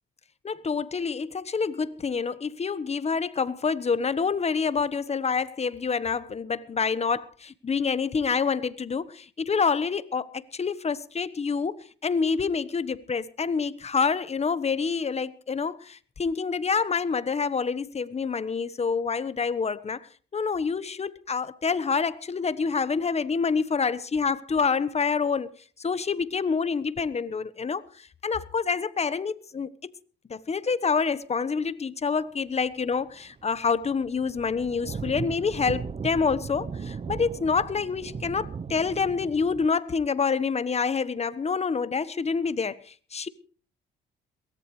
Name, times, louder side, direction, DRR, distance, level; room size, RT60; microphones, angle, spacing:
voice 1, 0.4-20.0 20.3-25.5 25.8-27.8 28.2-29.9 30.3-42.8 43.1-43.3, left 5 dB, 35° left, 1.2 m, -27 dB
sound 1, 33.0-33.2 33.4-39.7, right 5 dB, 35° right, 0.8 m, -37 dB
22.5 x 17.5 x 3.3 m
cardioid pair, 90°, 20 cm